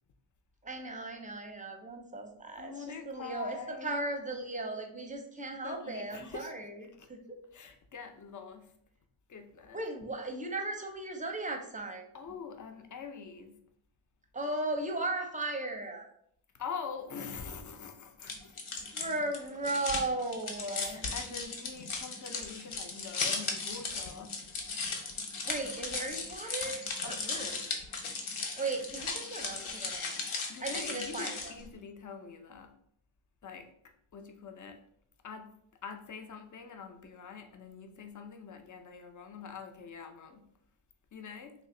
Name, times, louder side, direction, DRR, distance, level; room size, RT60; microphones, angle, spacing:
voice 1, 0.6-2.7 3.1-7.2 9.7-12.1 14.3-16.1 18.9-21.0 25.4-27.6 28.6-30.2 30.6-31.5, right 2 dB, 15° right, 3 dB, 0.6 m, -36 dB
voice 2, 2.6-4.0 5.6-6.5 7.0-7.1 7.5-8.7 9.3-9.8 12.1-13.6 16.5-18.8 20.8-24.4 27.0-27.6 30.5-32.8 33.4-33.7 34.1-34.8 35.2-40.5 41.1-41.5, left 6 dB, 40° left, 6 dB, 0.5 m, -44 dB
sound 1, 18.2-31.7, left 4 dB, 80° left, 0.8 m, -37 dB
3.2 x 2.5 x 3.7 m, 0.68 s
wide cardioid pair, 80°, 48 cm